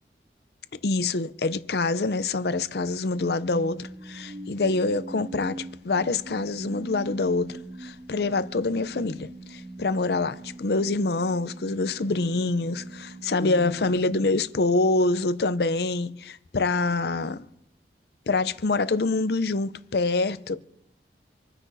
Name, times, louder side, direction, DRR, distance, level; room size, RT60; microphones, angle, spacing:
voice 1, 0.8-17.5 18.3-20.6, left 3 dB, 65° left, 0.6 m, -26 dB
sound 1, 3.2-15.3, right 2 dB, 35° right, 2.3 m, -42 dB
27.0 x 9.9 x 2.7 m
head